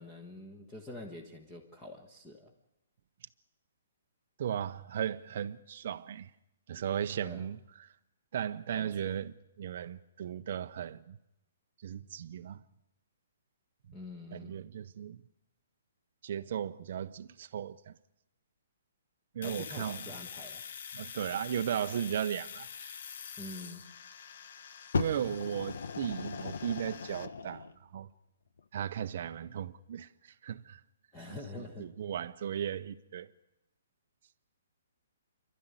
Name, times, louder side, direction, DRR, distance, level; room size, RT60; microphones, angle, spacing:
voice 1, 0.0-2.5 7.2-7.5 8.7-8.9 13.9-14.6 19.4-20.6 23.4-23.8 31.1-31.9, left 2 dB, 10° left, 1.3 m, -46 dB
voice 2, 4.4-6.3 6.7-7.9 8.3-11.2 11.8-12.6 14.3-15.2 16.2-17.9 19.3-20.0 20.9-22.9 24.9-27.6 27.9-28.1 28.7-30.1 30.4-30.8 31.8-33.3, right 9 dB, 40° right, 0.7 m, -36 dB
Domestic sounds home sounds, 19.4-27.3, left 7 dB, 50° left, 1.0 m, -46 dB
Fire, 24.9-27.8 28.6-28.7, left 5 dB, 85° left, 1.2 m, -37 dB
28.5 x 12.0 x 9.7 m
hypercardioid pair, 175°, 0 cm